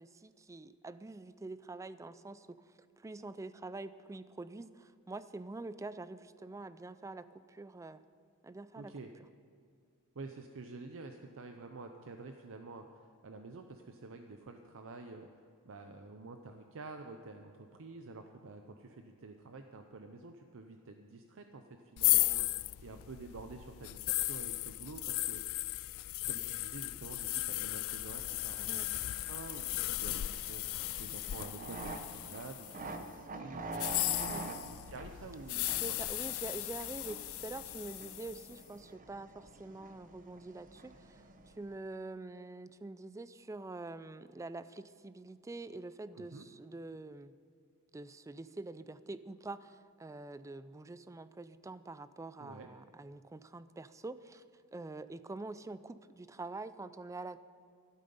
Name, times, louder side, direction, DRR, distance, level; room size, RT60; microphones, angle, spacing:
voice 1, 0.0-2.6 3.0-8.0 8.4-8.9 28.7-28.9 34.3-34.5 35.6-47.3 47.9-54.4 54.7-57.4, right 2 dB, 15° right, 14 dB, 0.3 m, -46 dB
voice 2, 8.8-9.1 10.1-12.8 13.2-15.3 15.6-22.5 22.8-25.6 26.3-34.4 34.7-36.0 46.2-46.5 52.4-52.7, right 3 dB, 65° right, 6 dB, 0.7 m, -49 dB
sound 1, 22.0-32.9 33.7-38.5, left 19 dB, 65° left, 0.3 m, -36 dB
hydraulic problem, 27.9-41.8, right 2 dB, 40° right, 0.8 m, -47 dB
12.5 x 12.0 x 5.4 m, 2.3 s
head